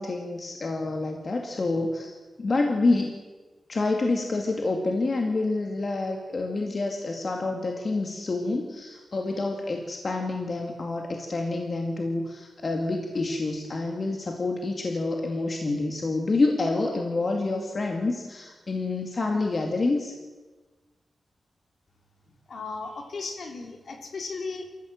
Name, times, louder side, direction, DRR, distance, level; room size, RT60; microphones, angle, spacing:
voice 1, 0.0-2.1 2.4-3.2 3.7-20.1, left 3 dB, 45° left, 2 dB, 2.3 m, -27 dB
voice 2, 22.5-24.7, left 4 dB, 65° left, 3 dB, 3.5 m, -36 dB
25.5 x 14.5 x 7.8 m, 1.3 s
wide cardioid pair, 95°, 0 cm